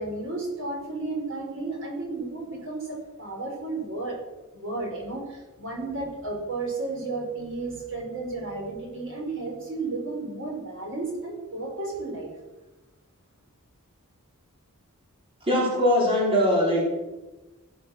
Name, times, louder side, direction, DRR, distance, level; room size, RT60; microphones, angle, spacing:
voice 1, 0.0-4.2 4.5-12.3, right 3 dB, 60° right, 1 dB, 4.9 m, -33 dB
voice 2, 15.5-16.9, equal, 25° right, -3 dB, 4.4 m, -21 dB
17.5 x 10.0 x 6.5 m, 1.1 s
head